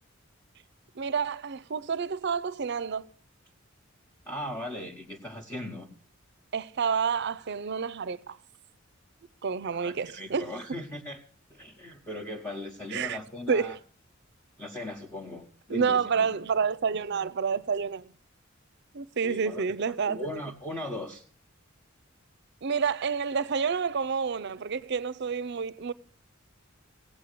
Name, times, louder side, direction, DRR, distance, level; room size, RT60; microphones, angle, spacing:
voice 1, 0.9-3.1 6.5-8.4 9.4-10.6 12.9-13.2 13.5-13.8 15.7-18.1 18.9-20.4 22.6-25.9, right 6 dB, 60° right, 0.5 m, -29 dB
voice 2, 4.2-5.9 9.7-11.2 11.5-13.8 14.6-16.3 19.2-19.6 20.0-21.2, left 1 dB, 10° left, 1.2 m, -38 dB
17.0 x 8.6 x 6.6 m
head